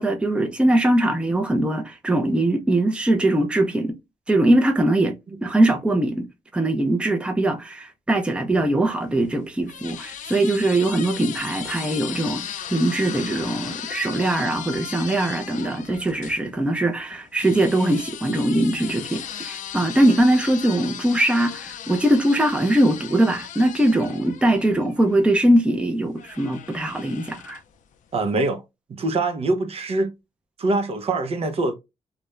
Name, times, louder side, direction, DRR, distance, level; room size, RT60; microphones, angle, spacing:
voice 1, 0.0-3.9 4.3-6.3 6.5-27.6, right 1 dB, 10° right, 0.5 m, -21 dB
sound 1, 9.0-16.4 17.4-25.3 26.2-27.8, left 9 dB, 80° left, 0.4 m, -37 dB
voice 2, 28.1-28.6 28.9-30.1 30.6-31.7, right 2 dB, 50° right, 0.6 m, -23 dB
2.4 x 2.1 x 3.0 m
cardioid pair, 95°, 13 cm